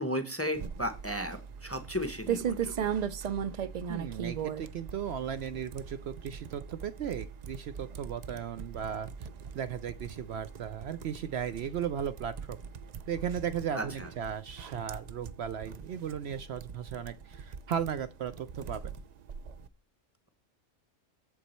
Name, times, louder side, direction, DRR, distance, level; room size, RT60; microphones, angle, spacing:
voice 1, 0.0-2.9 13.7-14.1, equal, 15° left, 8 dB, 0.7 m, -35 dB
sound 1, 0.5-19.7, right 7 dB, 90° right, 0.3 m, -39 dB
voice 2, 3.9-9.3 9.5-12.6 13.1-19.0, right 8 dB, 65° right, 12 dB, 0.7 m, -36 dB
8.2 x 7.2 x 4.3 m, 0.33 s
omnidirectional pair, 1.3 m